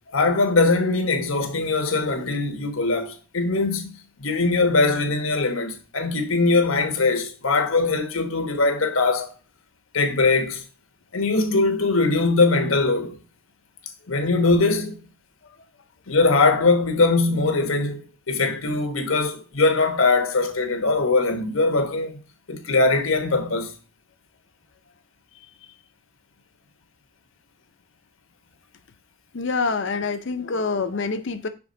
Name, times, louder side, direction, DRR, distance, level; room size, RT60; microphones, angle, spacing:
voice 1, 0.1-3.9 4.2-9.3 9.9-10.6 11.1-13.2 14.1-15.0 16.1-22.2 22.5-23.7, left 3 dB, 85° left, 1.2 m, -21 dB
voice 2, 29.3-31.5, left 4 dB, 60° left, 0.6 m, -26 dB
6.1 x 3.6 x 5.1 m
head